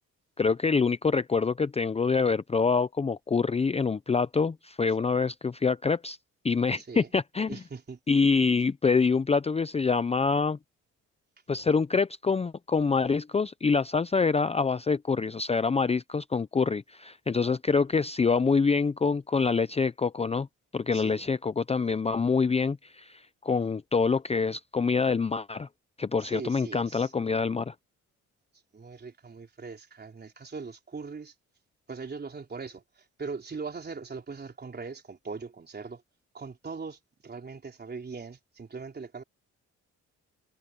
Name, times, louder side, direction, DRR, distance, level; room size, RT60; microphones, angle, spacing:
voice 1, 0.4-6.2 6.4-7.6 8.1-10.6 11.5-20.5 20.7-25.7 26.0-27.7, left 5 dB, 20° left, 0.6 m, -26 dB
voice 2, 6.8-7.1 7.5-8.0 20.9-21.2 26.2-27.1 28.7-31.3 31.9-32.8 33.2-36.0 36.3-39.2, right 4 dB, 35° right, 4.0 m, -40 dB
cardioid pair, 90°, 30 cm